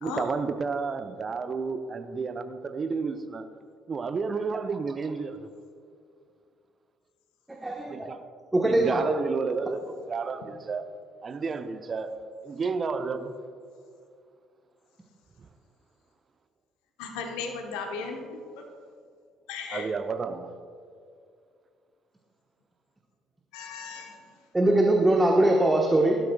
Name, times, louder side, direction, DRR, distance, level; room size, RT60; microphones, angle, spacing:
voice 1, 0.0-3.5 3.9-5.5 7.9-8.2 8.6-10.8 11.2-12.1 12.4-13.3 19.7-20.5, right 4 dB, 35° right, 10 dB, 0.6 m, -31 dB
voice 2, 7.5-8.1 8.5-9.0 24.5-26.2, right 1 dB, 15° right, 1 dB, 1.2 m, -22 dB
voice 3, 17.0-18.2 19.5-19.9 23.5-24.2, left 5 dB, 60° left, 3 dB, 1.1 m, -36 dB
17.5 x 12.0 x 2.3 m, 2.3 s
figure-of-eight pair, 50°, 0 cm